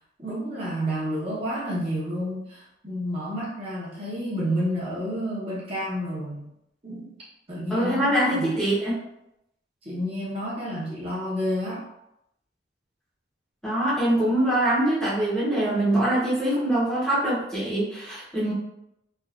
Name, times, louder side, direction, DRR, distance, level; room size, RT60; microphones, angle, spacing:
voice 1, 0.2-6.5 6.8-7.1 7.5-8.6 9.8-11.8, equal, 30° right, -8 dB, 0.8 m, -30 dB
voice 2, 7.7-9.0 13.6-18.5, right 1 dB, 5° left, -10 dB, 0.8 m, -23 dB
3.3 x 2.4 x 2.4 m, 0.83 s
head